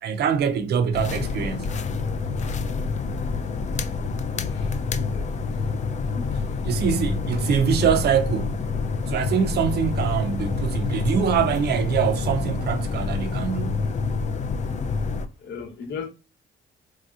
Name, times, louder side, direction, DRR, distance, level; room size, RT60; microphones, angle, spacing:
voice 1, 0.0-1.7 6.7-8.6 9.1-13.9, right 7 dB, 55° right, 0.5 m, -24 dB
sound 1, 0.9-15.3, left 4 dB, 35° left, 0.4 m, -27 dB
voice 2, 4.4-5.2 6.1-6.3 15.4-16.1, left 5 dB, 75° left, 1.0 m, -36 dB
3.3 x 2.7 x 2.4 m
cardioid pair, 90°, 20 cm